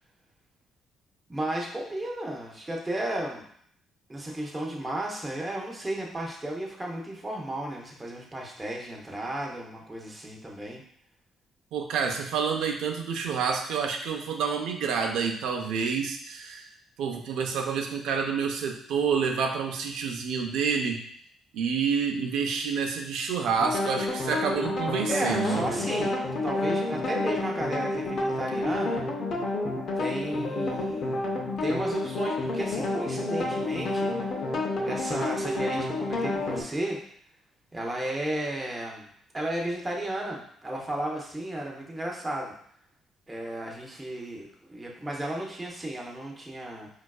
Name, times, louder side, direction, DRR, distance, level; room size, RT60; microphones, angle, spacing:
voice 1, 1.3-3.4 4.1-10.8 25.1-29.0 30.0-34.5 34.8-37.0 37.7-39.1 39.3-42.5 43.3-46.9, right 1 dB, 10° right, -1 dB, 0.5 m, -34 dB
voice 2, 11.7-16.7 17.0-21.0 21.5-25.8, right 6 dB, 85° right, 3 dB, 0.4 m, -28 dB
sound 1, 23.6-36.6, left 2 dB, 45° left, 0.5 m, -29 dB
4.4 x 2.3 x 2.3 m, 0.64 s
cardioid pair, 170°, 0 cm